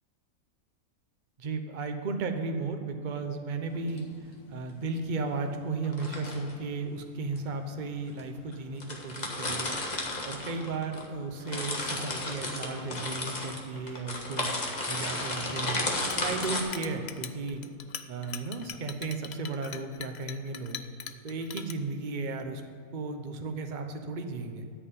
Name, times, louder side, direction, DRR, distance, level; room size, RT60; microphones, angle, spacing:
voice 1, 1.4-4.1 4.5-9.8 10.0-15.9 16.2-17.6 18.1-20.8 21.2-22.6 22.9-24.8, right 3 dB, 40° right, 6 dB, 0.9 m, -35 dB
sound 1, 3.7-4.0 5.8-6.5 7.4-7.5 8.2-8.3 8.5-8.6 8.8-11.1 11.3-16.6, left 2 dB, 30° left, 1.5 m, -33 dB
Chink clink, 15.9-21.7, left 9 dB, 60° left, 0.7 m, -41 dB
13.5 x 5.5 x 8.7 m, 2.4 s
omnidirectional pair, 1.5 m